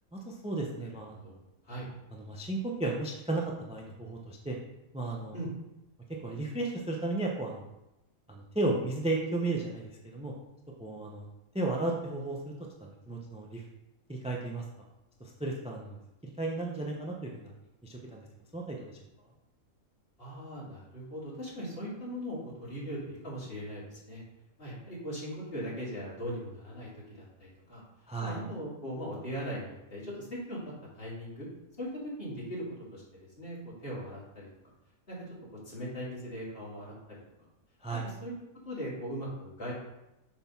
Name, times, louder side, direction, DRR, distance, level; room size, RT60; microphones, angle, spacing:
voice 1, 0.1-1.4 2.1-4.6 4.9-5.4 6.1-7.7 8.3-10.3 10.8-11.3 11.5-12.5 12.8-13.6 14.1-14.6 15.2-17.5 17.8-18.2 18.5-18.9 28.1-28.4 37.8-38.1, right 2 dB, 5° right, -1 dB, 0.5 m, -34 dB
voice 2, 20.2-24.2 24.6-27.8 28.2-31.5 31.8-32.6 32.9-33.0 33.4-34.5 35.1-35.2 35.6-36.9 38.0-38.3 38.6-39.7, equal, 40° left, -7 dB, 2.8 m, -39 dB
6.8 x 3.7 x 5.8 m, 0.93 s
omnidirectional pair, 1.5 m